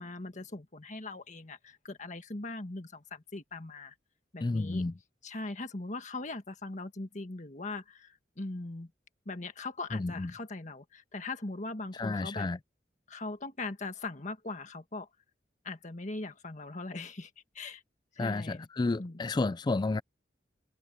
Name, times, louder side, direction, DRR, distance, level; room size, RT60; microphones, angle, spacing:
voice 1, 0.0-3.9 4.3-4.8 5.2-8.9 9.2-12.5 13.1-15.1 15.6-17.3 17.5-17.8 18.1-18.7 19.0-19.2, left 2 dB, 45° left, 1.7 m, -40 dB
voice 2, 4.4-4.9 9.9-10.3 12.0-12.6 18.2-20.0, left 3 dB, 25° left, 0.4 m, -31 dB
head